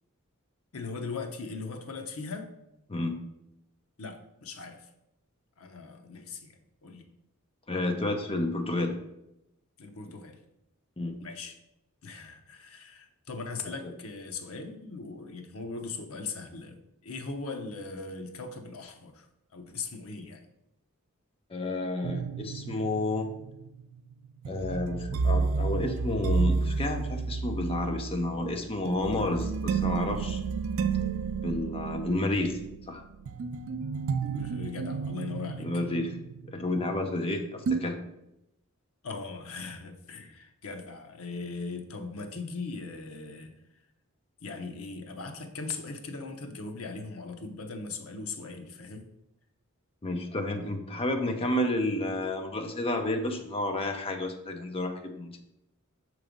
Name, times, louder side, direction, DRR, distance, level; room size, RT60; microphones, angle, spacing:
voice 1, 0.7-2.5 4.0-4.9 5.6-7.1 9.8-10.4 11.2-11.5 12.0-19.3 19.5-20.4 34.3-35.7 39.0-43.5 44.4-49.1, left 4 dB, 80° left, 4 dB, 0.7 m, -39 dB
voice 2, 7.7-9.0 11.0-11.2 21.5-23.3 24.5-30.4 31.4-32.6 32.9-33.0 35.6-36.2 36.5-38.0 50.0-55.4, left 2 dB, 25° left, 4 dB, 0.6 m, -30 dB
sound 1, 22.0-37.3 37.7-37.8, right 5 dB, 65° right, 0.4 m, -31 dB
6.0 x 3.2 x 5.1 m, 0.85 s
head